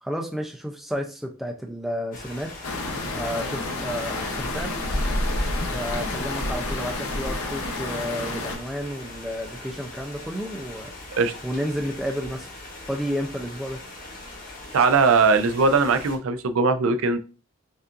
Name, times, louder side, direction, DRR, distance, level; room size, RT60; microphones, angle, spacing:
voice 1, 0.0-2.5 3.1-4.8 5.7-10.9 11.4-12.5 12.9-13.8, equal, ahead, 2 dB, 0.4 m, -31 dB
sound 1, 2.1-16.2, left 2 dB, 40° left, 1.0 m, -41 dB
sound 2, 2.6-8.6, left 2 dB, 80° left, 0.8 m, -29 dB
voice 2, 14.7-17.2, right 4 dB, 75° right, 9 dB, 0.4 m, -20 dB
5.3 x 2.5 x 2.5 m, 0.34 s
head